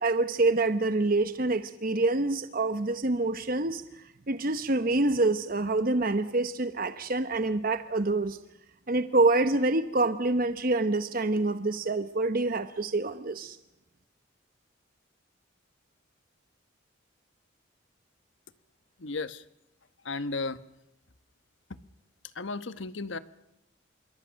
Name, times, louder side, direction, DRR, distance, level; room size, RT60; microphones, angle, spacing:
voice 1, 0.0-8.4 8.9-13.6, right 2 dB, 45° right, 10 dB, 1.0 m, -26 dB
voice 2, 19.0-19.4 20.1-20.6 22.4-23.2, left 3 dB, 70° left, 13 dB, 1.1 m, -33 dB
27.0 x 23.0 x 6.4 m, 0.87 s
head